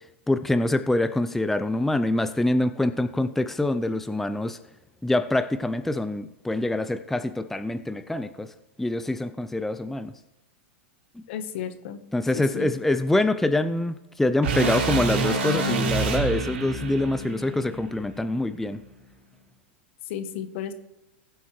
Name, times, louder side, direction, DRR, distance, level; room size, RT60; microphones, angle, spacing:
voice 1, 0.3-4.6 5.0-8.5 8.8-10.1 12.1-18.8, left 2 dB, 5° left, 10 dB, 0.4 m, -25 dB
voice 2, 11.3-12.0 12.3-12.7 20.1-20.7, left 9 dB, 60° left, 11 dB, 1.1 m, -33 dB
sound 1, 14.4-18.6, right 4 dB, 70° right, 3.7 m, -27 dB
20.0 x 8.0 x 3.2 m, 0.93 s
hypercardioid pair, 120°, 7 cm